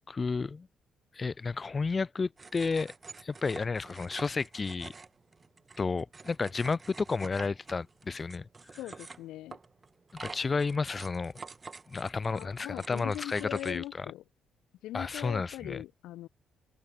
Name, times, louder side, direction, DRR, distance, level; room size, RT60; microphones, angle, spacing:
voice 1, 0.1-0.7 1.1-2.9 3.2-4.9 5.8-8.5 10.1-11.3 11.9-14.0 14.9-15.8, left 4 dB, 30° left, 1.3 m, -32 dB
sound 1, 2.4-13.8, right 4 dB, 30° right, 2.1 m, -49 dB
voice 2, 8.8-9.6 12.3-14.2 14.8-16.3, left 15 dB, 90° left, 1.9 m, -41 dB
open air
cardioid pair, 90°, 0 cm